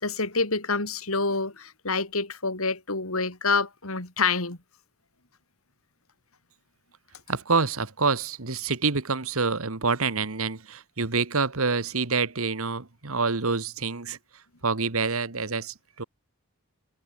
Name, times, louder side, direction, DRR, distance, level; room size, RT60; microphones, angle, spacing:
voice 1, 0.0-4.6, left 4 dB, 80° left, 4.7 m, -27 dB
voice 2, 7.3-14.2 14.6-16.0, right 4 dB, 80° right, 1.6 m, -27 dB
head